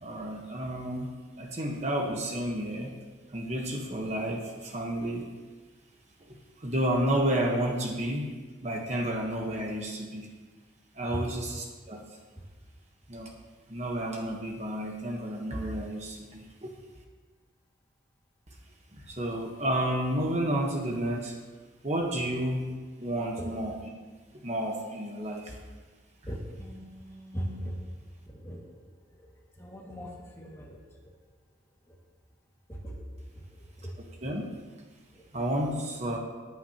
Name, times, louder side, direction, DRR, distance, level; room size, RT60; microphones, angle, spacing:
voice 1, 0.0-1.1 1.4-2.9 3.3-5.2 6.6-8.3 8.6-10.3 11.0-12.0 13.1-13.3 13.7-16.7 19.1-21.3 21.8-22.7 23.0-23.7 24.4-25.5 34.2-34.4 35.3-36.2, right 1 dB, 35° right, 0 dB, 1.2 m, -31 dB
voice 2, 26.3-27.9 28.3-28.8 29.1-31.1 31.9-32.0 32.7-34.2 35.1-35.2, equal, 15° left, -3 dB, 1.9 m, -40 dB
18.5 x 9.3 x 2.9 m, 1.4 s
head